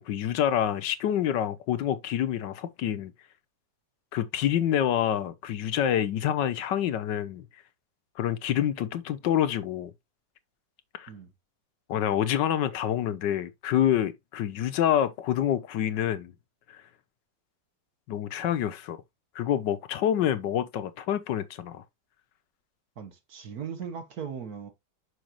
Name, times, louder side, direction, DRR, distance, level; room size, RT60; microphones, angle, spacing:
voice 1, 0.0-3.1 4.1-7.4 8.2-9.9 10.9-11.1 11.9-16.3 16.7-16.8 18.1-19.0 19.3-21.8, left 10 dB, 75° left, 1.5 m, -27 dB
voice 2, 23.0-24.7, right 7 dB, 55° right, 1.6 m, -38 dB
6.4 x 6.0 x 2.9 m
omnidirectional pair, 2.0 m